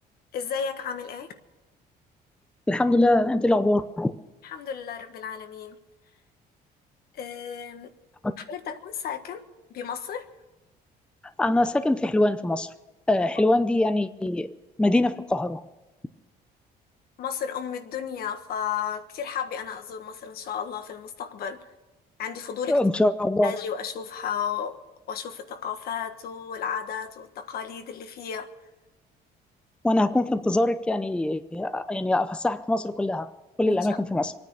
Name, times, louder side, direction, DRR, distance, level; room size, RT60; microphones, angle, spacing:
voice 1, 0.3-1.3 4.4-5.8 7.1-7.9 8.4-9.4 9.7-10.3 17.2-21.7 22.2-22.8 23.4-24.8 25.1-28.5 33.6-33.9, left 7 dB, 65° left, 1.5 m, -33 dB
voice 2, 2.7-4.2 8.2-8.3 11.4-12.7 13.1-15.6 22.7-23.5 29.8-33.3 33.6-34.3, left 1 dB, 5° left, 0.6 m, -23 dB
23.5 x 9.6 x 6.4 m
cardioid pair, 110°, 17 cm